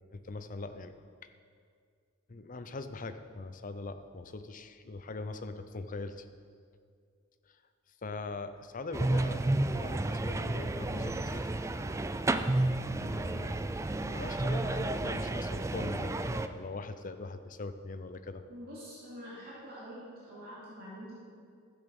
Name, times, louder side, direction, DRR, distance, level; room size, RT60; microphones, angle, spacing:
voice 1, 0.1-1.0 1.2-1.3 2.3-6.2 7.5-7.6 8.0-9.4 9.7-11.5 13.0-13.6 13.9-18.4, left 3 dB, 40° left, 9 dB, 0.6 m, -41 dB
sound 1, 8.9-16.5, right 2 dB, 15° right, 0.3 m, -31 dB
voice 2, 18.5-21.3, equal, 50° right, -8 dB, 2.6 m, -46 dB
12.0 x 8.2 x 5.4 m, 2.2 s
head